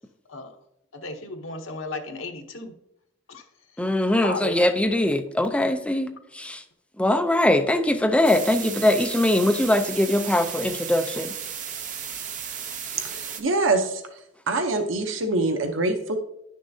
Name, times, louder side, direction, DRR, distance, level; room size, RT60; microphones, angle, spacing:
voice 1, 0.9-2.7 3.3-3.4 4.2-4.7, left 2 dB, 90° left, 4 dB, 1.0 m, -34 dB
voice 2, 3.8-6.6 7.0-11.3, left 1 dB, 5° left, 6 dB, 0.5 m, -22 dB
sound 1, 8.2-13.4, right 8 dB, 45° right, 0.7 m, -34 dB
voice 3, 13.0-14.0 14.5-16.2, right 2 dB, 85° right, 6 dB, 0.8 m, -24 dB
10.0 x 6.4 x 2.7 m, 0.82 s
head